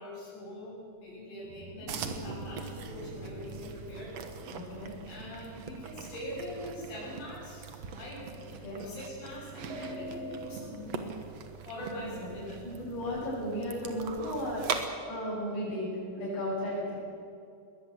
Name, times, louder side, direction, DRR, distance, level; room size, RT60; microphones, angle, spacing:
voice 1, 0.0-4.2 5.1-8.2 8.7-11.2 11.7-12.7, left 1 dB, 85° left, -5 dB, 9.3 m, -43 dB
sound 1, 1.4-8.8 9.6-10.3, right 1 dB, 55° right, 5.0 m, -46 dB
sound 2, 1.9-14.9, right 6 dB, 70° right, 1.5 m, -42 dB
voice 2, 4.5-4.9 8.6-8.8 11.8-12.3 12.6-14.7 15.1-17.0, equal, 65° left, -6 dB, 8.5 m, -35 dB
21.0 x 19.5 x 7.8 m, 2.6 s
omnidirectional pair, 5.1 m